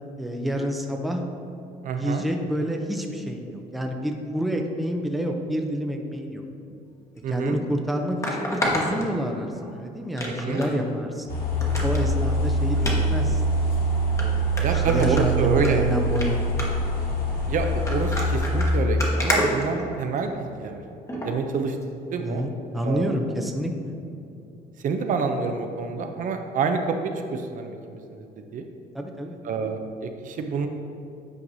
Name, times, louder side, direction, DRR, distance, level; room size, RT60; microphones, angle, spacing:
voice 1, 0.2-1.2 1.9-6.4 7.3-11.3 11.8-13.4 14.2-16.5 22.2-23.9 28.9-29.4, equal, ahead, 2 dB, 0.5 m, -28 dB
voice 2, 1.8-2.2 7.2-7.6 10.2-10.6 11.6-11.8 14.6-15.9 17.5-20.8 21.1-21.8 22.1-22.4 22.8-23.1 24.8-28.6 29.4-30.7, right 5 dB, 50° right, 6 dB, 0.5 m, -27 dB
sound 1, 7.2-7.3 8.2-9.7 10.2-10.7 11.1-11.2 11.6-12.0 12.8-13.0 13.7-13.8 14.2-14.3 14.6-15.7 16.0-16.3 16.6-16.9 17.6-20.3 21.1-21.3 21.8-21.9, left 1 dB, 15° left, 1.0 m, -29 dB
sound 2, 11.3-18.7, right 1 dB, 60° left, 1.2 m, -24 dB
8.5 x 4.7 x 2.6 m, 2.7 s
cardioid pair, 110°, 17 cm